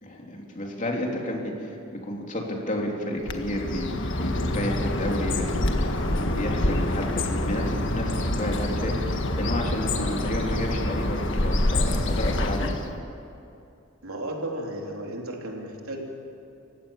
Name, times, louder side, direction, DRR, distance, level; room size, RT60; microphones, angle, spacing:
voice 1, 0.0-1.8 2.0-5.6 5.8-12.7, left 1 dB, 35° left, 0 dB, 3.3 m, -31 dB
Bird, 3.2-13.0, left 1 dB, 60° left, 1.6 m, -26 dB
voice 2, 14.0-16.0, right 1 dB, 85° right, 0 dB, 3.5 m, -34 dB
29.0 x 16.0 x 7.3 m, 2.7 s
head